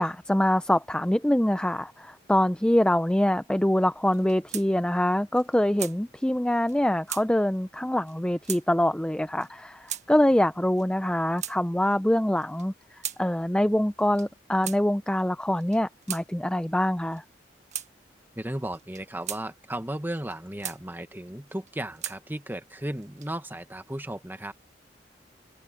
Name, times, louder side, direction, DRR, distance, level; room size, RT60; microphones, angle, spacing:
voice 1, 0.0-12.7 13.2-17.2, left 1 dB, 5° left, 0.5 m, -24 dB
sound 1, 4.1-4.7 5.0-5.1 5.3-6.0 6.7-6.8 7.1-7.3 8.1-8.2 8.4-8.6 9.4-9.5 9.9-10.1 10.8-11.6 12.4-13.2 14.0-14.3 14.6-14.8 15.5-16.2 17.1-17.3 17.7-17.9 18.7-19.4 20.1-20.8 21.5-22.2 23.0-23.5, right 10 dB, 40° right, 1.6 m, -37 dB
voice 2, 18.3-24.5, right 1 dB, 10° right, 1.3 m, -35 dB
head